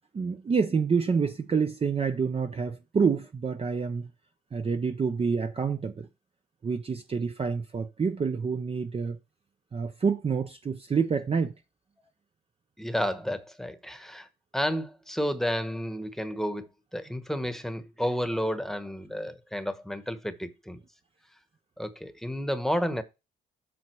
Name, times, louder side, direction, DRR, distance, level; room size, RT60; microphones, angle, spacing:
voice 1, 0.1-4.1 4.5-6.1 6.6-9.2 9.7-11.5, right 5 dB, 30° right, 0.6 m, -27 dB
voice 2, 12.8-14.3 14.5-16.7 16.9-20.8 21.8-23.0, equal, ahead, 1.1 m, -31 dB
7.8 x 5.8 x 4.5 m
cardioid pair, 90°, 20 cm